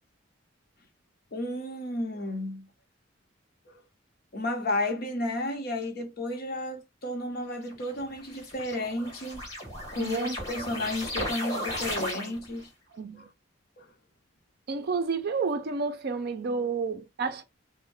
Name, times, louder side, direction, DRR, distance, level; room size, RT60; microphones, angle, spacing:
voice 1, 1.3-2.7 4.3-9.5 9.9-12.6 13.2-13.3 13.8-13.9, left 1 dB, 50° left, 0.8 m, -32 dB
sound 1, 7.7-12.6, left 1 dB, 20° left, 1.3 m, -36 dB
voice 2, 9.9-10.4 12.9-13.3 14.7-17.4, right 4 dB, 55° right, 0.5 m, -30 dB
2.6 x 2.1 x 3.2 m
head